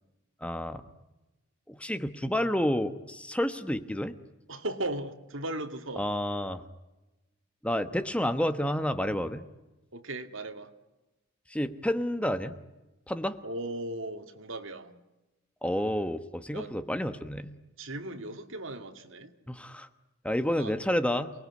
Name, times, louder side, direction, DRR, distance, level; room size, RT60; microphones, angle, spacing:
voice 1, 0.4-0.8 1.7-4.1 6.0-6.6 7.6-9.4 11.5-12.5 13.1-13.4 15.6-17.6 19.5-19.9 20.2-21.3, left 1 dB, 5° left, 1.1 m, -30 dB
voice 2, 4.5-6.1 9.9-10.7 13.4-15.0 16.5-16.7 17.8-19.3 20.5-20.9, right 1 dB, 75° right, 2.3 m, -37 dB
29.0 x 20.0 x 9.7 m
head